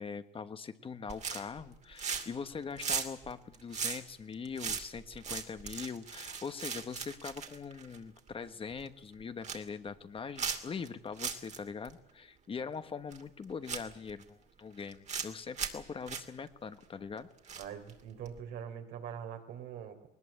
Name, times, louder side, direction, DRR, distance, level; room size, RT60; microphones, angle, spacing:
voice 1, 0.0-17.3, left 5 dB, 30° left, 10 dB, 1.3 m, -42 dB
sound 1, 1.1-1.6 1.9-2.4 2.7-8.3 8.7-8.9 9.2-9.7 10.4-10.9 11.2-11.6 11.9-12.0 13.1-13.2 13.7-14.2 14.8-15.3 15.6-16.2 17.5-17.9 18.3-18.4, right 6 dB, 45° right, 2.6 m, -37 dB
voice 2, 17.6-20.1, right 8 dB, 75° right, 5 dB, 3.7 m, -43 dB
20.0 x 19.5 x 8.7 m, 0.78 s
cardioid pair, 110°, 17 cm